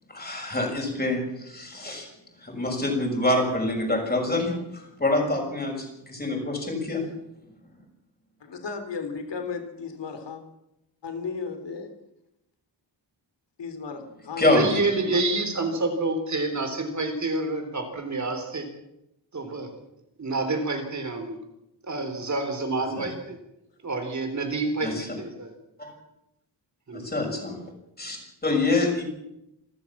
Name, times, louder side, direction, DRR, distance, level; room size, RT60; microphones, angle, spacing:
voice 1, 0.1-2.1 2.4-7.0 14.4-14.8 23.0-23.1 24.8-25.1 25.8-25.9 26.9-27.5 28.0-29.0, left 2 dB, 20° left, 1 dB, 6.6 m, -26 dB
voice 2, 8.4-10.4 11.0-11.9 13.6-15.2, left 5 dB, 70° left, 8 dB, 3.6 m, -35 dB
voice 3, 14.4-18.7 19.3-19.7 20.2-21.4 21.8-23.4 23.8-25.5 26.9-27.0, right 2 dB, 40° right, 6 dB, 3.7 m, -28 dB
27.0 x 13.5 x 7.4 m, 0.87 s
wide cardioid pair, 165°, 45 cm